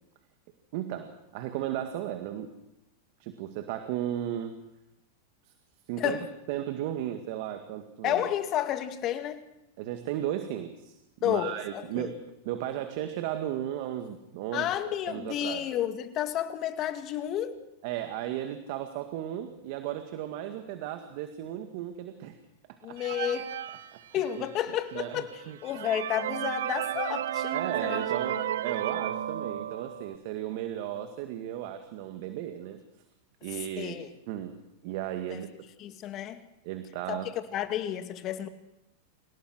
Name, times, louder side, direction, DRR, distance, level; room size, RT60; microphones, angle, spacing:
voice 1, 0.7-2.5 3.2-4.5 5.9-6.2 6.5-8.3 9.8-11.0 11.2-14.7 15.1-15.7 17.8-22.4 22.9-23.0 23.9-24.5 24.9-25.6 27.5-32.8 33.4-34.0 34.3-34.6 34.8-35.5 36.6-37.3, right 11 dB, 60° right, 2.0 m, -35 dB
voice 2, 6.0-6.3 8.0-9.4 11.2-12.1 14.5-17.7 22.8-23.5 24.1-28.4 33.8-34.1 35.3-35.4 35.8-36.4 37.1-38.5, left 11 dB, 40° left, 2.3 m, -31 dB
sound 1, 23.0-24.6 25.2-25.3 25.6-30.2, right 11 dB, 75° right, 1.1 m, -33 dB
26.5 x 17.5 x 6.3 m
hypercardioid pair, 105°, 0 cm